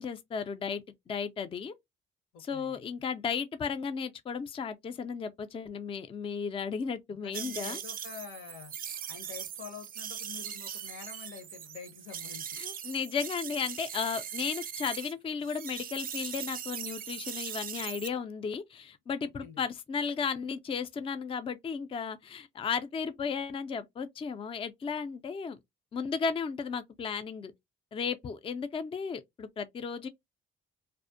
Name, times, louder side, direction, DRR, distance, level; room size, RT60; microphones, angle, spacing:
voice 1, 0.0-1.7 2.4-7.8 12.6-25.6 25.9-27.5 27.9-30.1, left 6 dB, 25° left, 0.3 m, -34 dB
voice 2, 2.3-2.8 7.2-8.7 9.1-12.6 19.2-19.6, left 7 dB, 90° left, 0.8 m, -47 dB
sound 1, 7.3-15.1 15.4-18.1, right 8 dB, 45° right, 0.4 m, -40 dB
2.5 x 2.0 x 2.5 m
cardioid pair, 90°, 20 cm